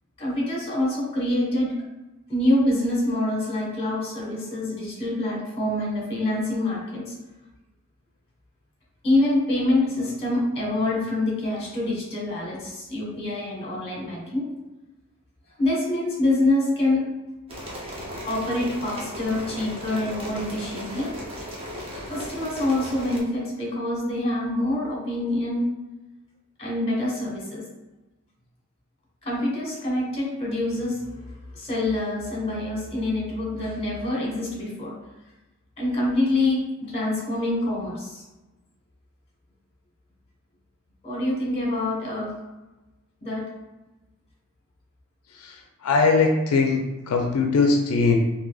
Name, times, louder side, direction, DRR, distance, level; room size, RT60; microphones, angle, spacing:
voice 1, 0.2-1.7 2.3-7.1 9.0-14.4 15.6-17.0 18.2-21.1 22.1-25.7 26.6-27.6 29.2-31.0 31.5-34.9 35.8-38.2 41.0-42.3 43.2-43.4, left 1 dB, 25° left, -4 dB, 1.3 m, -25 dB
sound 1, 17.5-23.2, equal, 25° right, 0.7 m, -36 dB
voice 2, 45.4-48.2, left 4 dB, 85° left, 2 dB, 0.4 m, -21 dB
3.7 x 2.7 x 2.3 m, 1.1 s
head